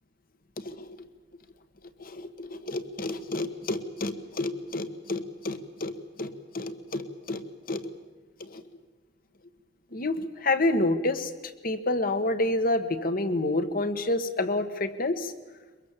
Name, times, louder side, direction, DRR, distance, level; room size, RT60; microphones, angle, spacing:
voice 1, 0.6-1.0 2.0-5.9 6.2-7.4 7.7-7.8 8.4-8.6 9.9-11.3 11.6-15.3, left 2 dB, 50° left, 10 dB, 1.5 m, -29 dB
23.0 x 22.5 x 7.5 m, 1.3 s
head